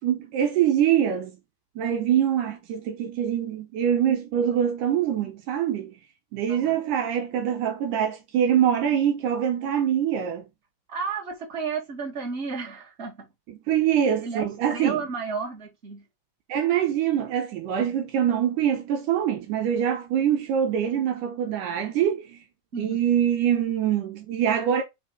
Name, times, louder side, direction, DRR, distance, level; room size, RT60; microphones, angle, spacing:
voice 1, 0.0-1.4 1.8-5.9 6.3-10.4 13.7-15.0 16.5-22.4 22.8-24.8, right 9 dB, 75° right, 2.3 m, -24 dB
voice 2, 6.5-6.8 10.9-13.3 14.2-16.1 22.7-23.0, right 5 dB, 25° right, 2.1 m, -32 dB
5.4 x 3.6 x 4.8 m
omnidirectional pair, 3.8 m